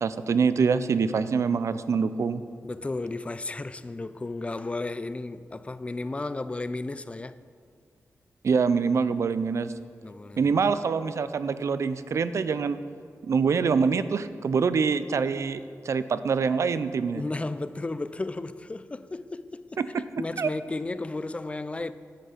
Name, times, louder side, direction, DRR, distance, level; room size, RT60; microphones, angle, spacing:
voice 1, 0.0-2.4 8.4-9.7 10.4-12.8 13.2-17.2 19.8-20.5, right 5 dB, 65° right, 0.4 m, -25 dB
voice 2, 2.6-7.4 10.0-10.6 17.2-19.8 20.2-21.9, left 2 dB, 25° left, 0.3 m, -34 dB
9.9 x 7.8 x 5.1 m
wide cardioid pair, 95°, 5 cm